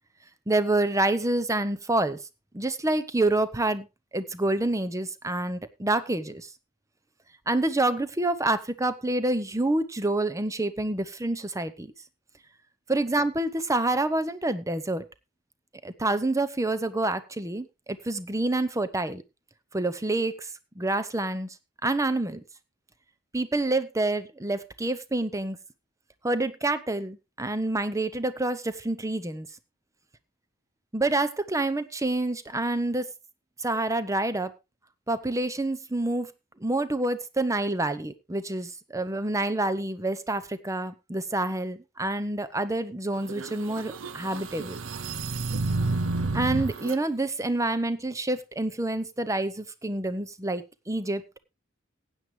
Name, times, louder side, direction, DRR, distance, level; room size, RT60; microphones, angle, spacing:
voice 1, 0.5-2.2 2.5-3.9 4.1-6.5 7.5-11.9 12.9-15.0 15.8-19.2 19.7-20.5 20.8-21.5 21.8-22.4 23.3-25.6 26.2-29.5 30.9-33.1 33.6-34.5 35.1-36.3 36.6-44.8 46.3-51.2, right 2 dB, 15° right, 14 dB, 0.8 m, -27 dB
sound 1, 43.2-47.0, right 3 dB, 75° right, 0.7 m, -30 dB
15.5 x 9.0 x 3.2 m, 0.25 s
head